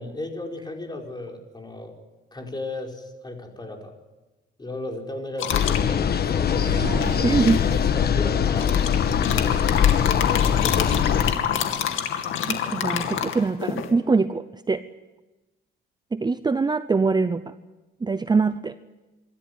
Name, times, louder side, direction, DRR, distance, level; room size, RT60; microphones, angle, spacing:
voice 1, 0.0-2.0 2.3-3.9 4.6-6.8 7.9-9.0, left 2 dB, 20° left, 2 dB, 4.9 m, -36 dB
sound 1, 5.4-5.8 7.0-7.8 8.5-13.9, left 9 dB, 85° left, 2.5 m, -27 dB
sound 2, 5.5-11.3, left 8 dB, 55° left, 1.4 m, -22 dB
sound 3, 6.3-9.3, right 3 dB, 40° right, 3.2 m, -36 dB
voice 2, 7.2-7.6 12.5-14.8 16.1-17.5 18.0-18.8, right 4 dB, 20° right, 12 dB, 0.7 m, -23 dB
26.0 x 13.0 x 9.7 m, 1.1 s
cardioid pair, 90°, 20 cm